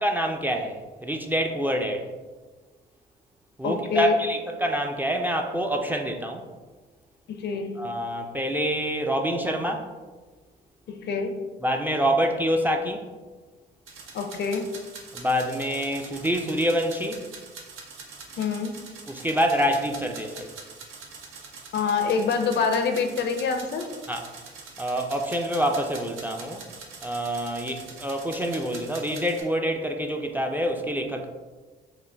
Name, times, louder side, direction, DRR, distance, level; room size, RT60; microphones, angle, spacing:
voice 1, 0.0-2.1 3.6-6.4 7.8-9.9 11.6-13.0 15.1-17.2 19.1-20.5 24.1-24.2 24.8-26.6 27.0-31.3, equal, 10° right, 3 dB, 0.3 m, -26 dB
voice 2, 3.6-4.2 7.3-7.8 10.9-11.4 14.1-14.7 18.4-18.7 21.7-23.9, left 5 dB, 60° left, 6 dB, 0.5 m, -26 dB
sound 1, 13.9-29.4, right 4 dB, 85° right, 0.6 m, -44 dB
3.7 x 2.1 x 3.2 m, 1.3 s
cardioid pair, 90°, 20 cm